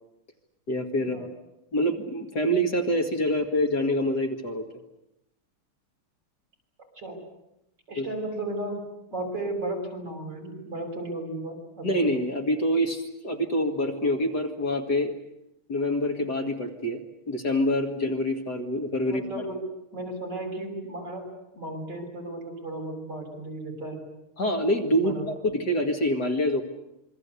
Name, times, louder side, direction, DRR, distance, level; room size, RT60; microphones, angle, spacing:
voice 1, 0.7-1.3 1.7-4.7 8.0-8.1 11.8-15.1 15.7-19.4 24.4-26.6, equal, 50° left, 4 dB, 2.6 m, -26 dB
voice 2, 7.9-8.8 9.1-12.0 19.0-19.6 19.9-21.2 21.5-24.0 24.9-25.2, right 2 dB, 50° right, 3 dB, 7.3 m, -34 dB
27.0 x 24.0 x 8.4 m, 0.86 s
omnidirectional pair, 2.4 m